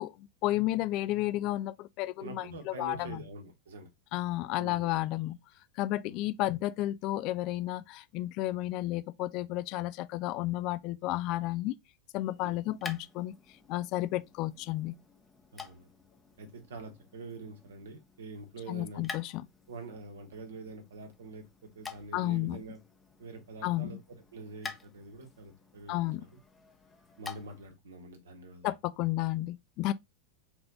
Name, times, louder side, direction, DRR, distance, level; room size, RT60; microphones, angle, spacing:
voice 1, 0.0-3.2 4.1-5.4 5.8-11.7 12.1-13.4 13.7-15.0 18.7-19.5 22.1-22.6 23.6-24.0 25.9-26.3 28.6-29.9, left 16 dB, 40° left, 0.3 m, -32 dB
voice 2, 2.2-3.9 4.6-5.0 6.0-6.2 12.4-12.6 15.5-15.9 16.4-19.1 19.7-22.8 23.2-26.1 27.2-28.7, right 3 dB, 65° right, 1.3 m, -45 dB
sound 1, 12.1-27.8, left 4 dB, 15° left, 0.8 m, -49 dB
4.1 x 3.3 x 3.8 m
figure-of-eight pair, 90°, 0 cm